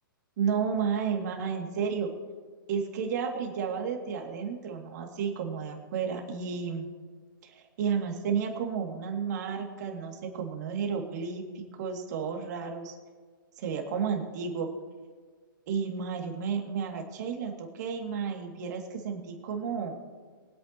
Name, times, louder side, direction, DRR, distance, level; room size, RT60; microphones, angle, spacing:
voice 1, 0.4-2.1 2.7-6.9 7.4-12.9 13.6-14.7 15.7-20.0, right 6 dB, 50° right, 2 dB, 2.5 m, -32 dB
23.5 x 8.4 x 3.0 m, 1.5 s
hypercardioid pair, 125°, 12 cm